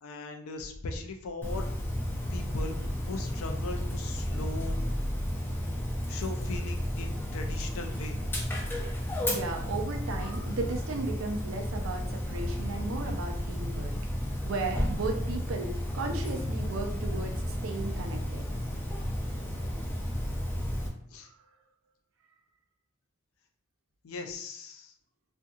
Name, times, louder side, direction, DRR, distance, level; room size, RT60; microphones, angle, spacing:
voice 1, 0.0-1.7 2.3-2.8 3.0-4.8 6.1-8.2 21.1-21.3 24.0-24.9, left 3 dB, 80° left, 4 dB, 0.4 m, -38 dB
Dog, 1.4-20.9, equal, 10° left, 0.3 m, -32 dB
voice 2, 9.3-13.9 14.4-18.5, right 3 dB, 65° right, 3 dB, 0.5 m, -35 dB
2.7 x 2.5 x 2.3 m, 0.63 s
head